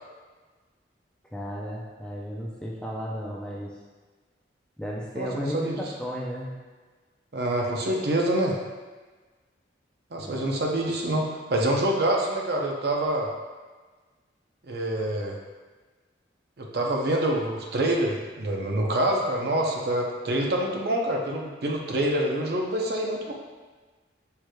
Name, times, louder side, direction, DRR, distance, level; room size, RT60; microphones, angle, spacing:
voice 1, 1.3-3.8 4.8-6.6 10.2-10.4, equal, 5° left, -4 dB, 0.4 m, -34 dB
voice 2, 5.1-5.9 7.3-8.6 10.1-13.3 14.7-15.4 16.6-23.3, right 1 dB, 55° right, 0 dB, 0.6 m, -26 dB
4.9 x 4.6 x 2.2 m, 1.3 s
head